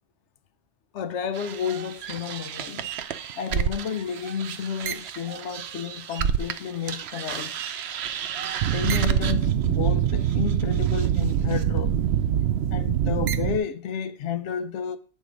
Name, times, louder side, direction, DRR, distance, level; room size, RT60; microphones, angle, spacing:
voice 1, 0.9-2.9 3.4-7.8 8.7-12.0 12.7-15.0, left 7 dB, 80° left, 0.9 m, -31 dB
sound 1, 1.4-6.6 6.9-13.6, right 9 dB, 70° right, 0.8 m, -26 dB
8.3 x 3.6 x 5.0 m
omnidirectional pair, 1.2 m